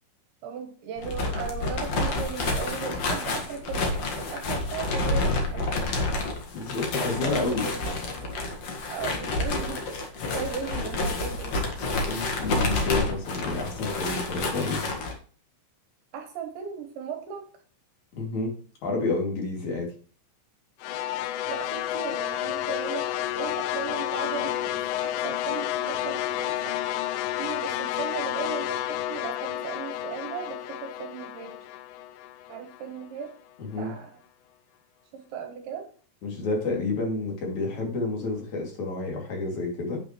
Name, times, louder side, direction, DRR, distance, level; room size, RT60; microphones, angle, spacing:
voice 1, 0.4-5.9 7.0-8.3 8.9-11.6 16.1-17.5 21.5-26.8 27.4-31.7 32.5-33.4 33.8-34.2 35.1-35.9, right 6 dB, 70° right, 5 dB, 3.4 m, -37 dB
sound 1, 1.0-15.1, left 2 dB, 60° left, 1.7 m, -29 dB
voice 2, 6.5-7.7 12.0-14.8 18.2-18.5 18.8-19.9 33.6-33.9 36.2-40.0, left 3 dB, 45° left, 0 dB, 3.5 m, -30 dB
sound 2, 20.8-33.1, left 13 dB, 90° left, 3.3 m, -31 dB
8.9 x 8.7 x 3.1 m, 0.42 s
omnidirectional pair, 5.6 m